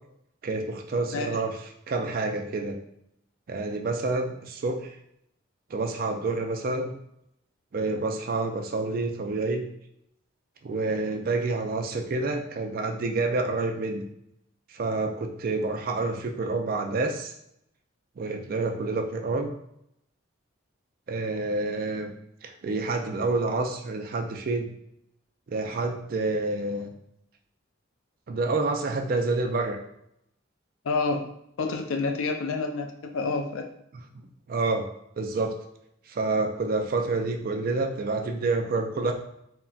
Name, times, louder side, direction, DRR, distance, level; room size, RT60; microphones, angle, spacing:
voice 1, 0.4-2.8 3.5-4.9 5.7-6.9 7.7-9.6 10.6-14.0 14.7-17.3 18.2-19.5 21.1-22.1 22.4-24.7 25.5-26.9 28.3-29.8 33.9-34.0 34.5-34.9 35.2-35.5 36.1-39.1, right 3 dB, 45° right, 4 dB, 0.4 m, -28 dB
voice 2, 30.9-31.3 31.6-33.7, left 3 dB, 85° left, 4 dB, 0.4 m, -28 dB
3.8 x 2.1 x 2.3 m, 0.76 s
head